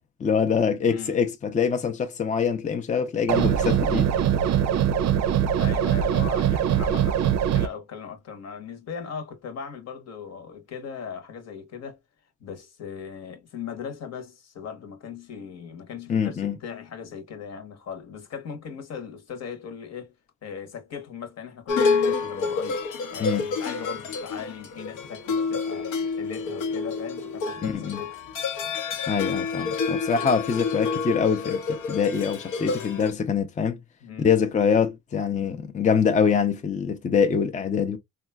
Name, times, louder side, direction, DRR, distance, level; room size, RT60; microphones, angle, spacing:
voice 1, 0.2-4.1 16.1-16.6 23.2-23.5 27.6-28.0 29.1-33.8 34.2-38.0, left 6 dB, 25° left, 0.4 m, -24 dB
voice 2, 0.9-1.2 5.6-12.0 12.4-20.1 20.4-22.8 23.1-28.2 34.0-34.3, left 7 dB, 60° left, 1.0 m, -38 dB
sound 1, 3.3-7.7, right 9 dB, 60° right, 0.5 m, -22 dB
sound 2, 21.7-33.1, left 4 dB, 85° left, 0.8 m, -28 dB
3.6 x 2.3 x 2.2 m
cardioid pair, 90°, 30 cm